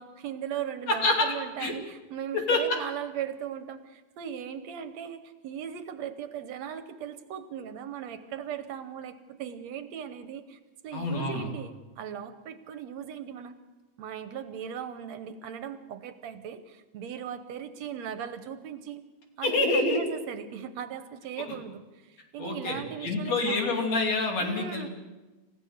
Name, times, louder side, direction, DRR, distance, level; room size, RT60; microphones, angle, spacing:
voice 1, 0.0-13.6 14.0-19.0 19.4-23.9 24.4-24.9, right 9 dB, 70° right, 10 dB, 2.0 m, -38 dB
voice 2, 0.9-1.3 1.6-1.7 2.3-2.6 10.9-11.5 19.4-20.0 21.5-21.6 22.4-24.9, left 3 dB, 60° left, 2 dB, 3.9 m, -27 dB
27.5 x 15.5 x 6.6 m, 1.2 s
omnidirectional pair, 3.4 m